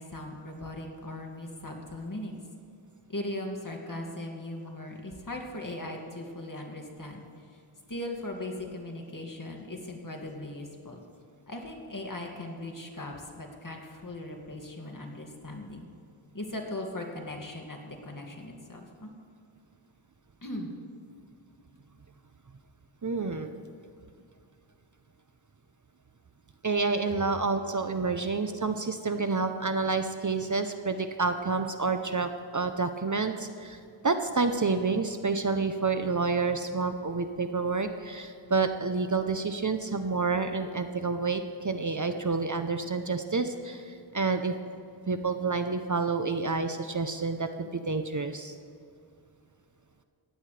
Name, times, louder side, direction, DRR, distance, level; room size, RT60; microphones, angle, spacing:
voice 1, 0.0-2.4 3.1-7.5 7.9-11.0 11.5-15.9 16.3-19.1 20.4-20.7, left 1 dB, 40° left, 1 dB, 2.3 m, -39 dB
voice 2, 23.0-23.6 26.6-44.5 45.1-48.5, right 4 dB, 40° right, 7 dB, 0.8 m, -29 dB
18.5 x 15.5 x 3.4 m, 2.4 s
wide cardioid pair, 85°, 49 cm